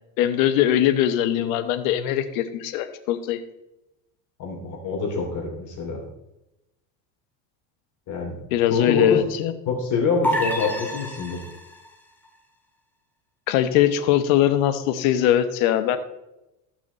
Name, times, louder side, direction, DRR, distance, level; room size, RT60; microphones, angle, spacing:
voice 1, 0.2-3.4 8.5-9.5 13.5-16.0, left 11 dB, 75° left, 10 dB, 1.1 m, -21 dB
voice 2, 4.4-6.0 8.1-8.4 8.7-9.2 9.7-11.4, left 4 dB, 45° left, 0 dB, 3.0 m, -25 dB
sound 1, 10.2-11.9, equal, 5° left, 1.9 m, -28 dB
14.5 x 6.2 x 4.0 m, 0.93 s
supercardioid pair, 115°, 40 cm